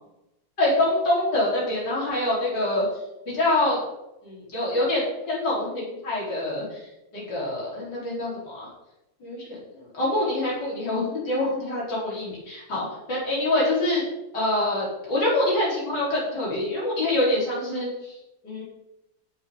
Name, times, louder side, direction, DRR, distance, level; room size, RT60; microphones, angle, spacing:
voice 1, 0.6-2.9 3.3-3.8 4.2-6.8 7.1-8.7 9.2-14.0 14.3-18.1 18.4-18.6, left 1 dB, 65° left, -6 dB, 5.2 m, -25 dB
17.5 x 7.4 x 4.0 m, 0.90 s
omnidirectional pair, 2.0 m